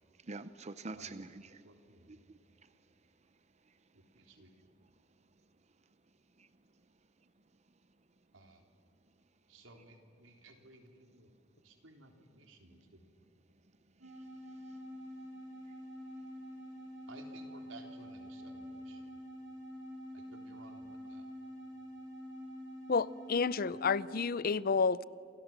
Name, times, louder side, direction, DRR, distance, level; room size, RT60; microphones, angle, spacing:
voice 1, 0.2-1.7 2.1-2.8 3.6-3.8 6.4-6.5 7.2-7.3 14.0-14.8 15.7-15.8, right 3 dB, 35° right, 0.7 m, -48 dB
voice 2, 0.9-1.2 1.6-2.2 3.9-4.7 8.3-8.6 9.5-11.3 11.6-13.1 17.1-19.1 20.1-21.3, right 2 dB, 90° right, 3.8 m, -57 dB
sound 1, 14.0-24.4, equal, 75° right, 8.0 m, -47 dB
voice 3, 22.9-25.0, left 5 dB, 50° left, 0.6 m, -30 dB
28.5 x 28.0 x 7.4 m
head